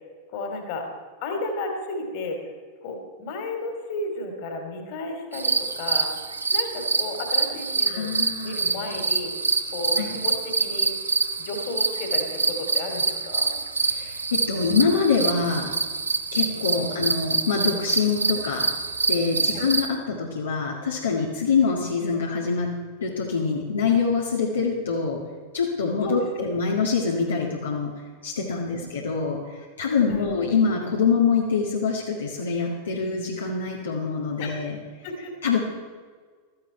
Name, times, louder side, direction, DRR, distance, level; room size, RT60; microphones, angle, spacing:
voice 1, 0.3-0.9 1.2-2.4 2.8-6.1 6.5-9.3 9.7-10.9 11.4-13.5 16.7-17.0 19.5-19.6 26.0-26.8 28.7-28.9 30.1-30.3 34.4-34.6 35.0-35.3, left 2 dB, 45° left, 4 dB, 3.0 m, -33 dB
sound 1, 5.3-19.9, right 4 dB, 75° right, 0.9 m, -26 dB
voice 2, 7.9-8.6 10.0-10.2 13.9-15.7 16.3-18.7 19.1-22.7 23.0-25.2 25.5-27.9 28.2-34.8 35.4-35.6, left 5 dB, 70° left, -2 dB, 2.0 m, -25 dB
15.5 x 14.0 x 4.4 m, 1.5 s
figure-of-eight pair, 90°, 0 cm